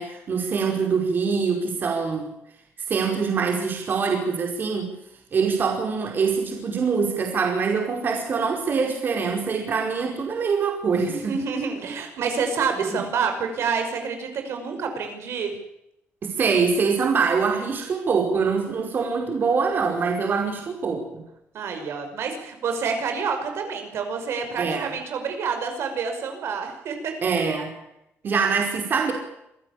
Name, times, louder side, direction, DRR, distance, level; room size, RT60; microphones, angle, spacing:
voice 1, 0.0-2.3 2.9-5.0 5.3-11.4 12.9-13.0 16.2-21.2 24.6-24.9 27.2-27.8 28.2-29.1, right 5 dB, 45° right, 2 dB, 5.1 m, -24 dB
voice 2, 11.1-15.5 21.5-27.1, right 5 dB, 70° right, 5 dB, 5.8 m, -28 dB
26.5 x 15.5 x 8.7 m, 0.82 s
cardioid pair, 135°, 5 cm